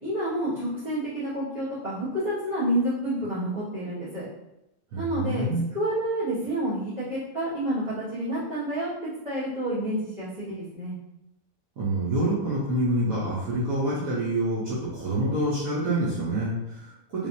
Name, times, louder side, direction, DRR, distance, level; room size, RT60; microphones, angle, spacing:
voice 1, 0.0-4.3 5.0-5.5 5.7-10.9, right 1 dB, 20° right, -16 dB, 1.5 m, -29 dB
voice 2, 4.9-5.7 11.8-17.3, right 1 dB, 80° right, -7 dB, 1.3 m, -27 dB
3.3 x 3.2 x 2.7 m, 0.88 s
omnidirectional pair, 1.5 m